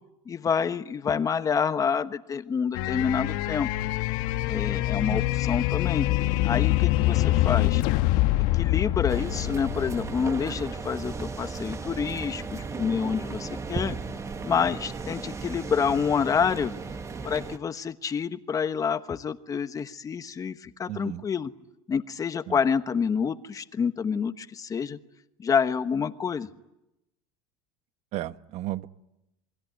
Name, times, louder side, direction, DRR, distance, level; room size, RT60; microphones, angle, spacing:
voice 1, 0.3-3.7 4.5-6.1 6.4-7.8 8.5-14.0 14.4-16.7 17.2-21.5 21.9-25.0 25.4-26.5, left 6 dB, 25° left, 11 dB, 1.2 m, -28 dB
sound 1, 2.7-10.6, left 16 dB, 65° left, 1.1 m, -25 dB
sound 2, 9.1-17.6, right 4 dB, 20° right, 1.4 m, -35 dB
voice 2, 20.9-21.2 22.5-22.6 28.1-28.9, right 15 dB, 50° right, 13 dB, 1.0 m, -34 dB
28.0 x 21.5 x 9.5 m, 0.91 s
supercardioid pair, 130°, 15 cm